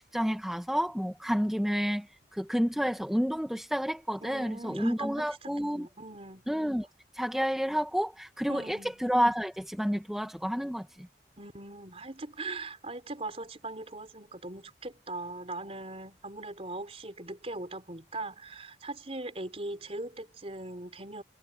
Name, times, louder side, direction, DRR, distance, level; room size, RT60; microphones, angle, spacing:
voice 1, 0.1-2.1 2.3-5.9 6.5-6.9 7.1-11.1, equal, ahead, 1.1 m, -30 dB
voice 2, 4.2-6.4 8.5-9.0 11.4-21.2, right 2 dB, 35° right, 4.3 m, -40 dB
head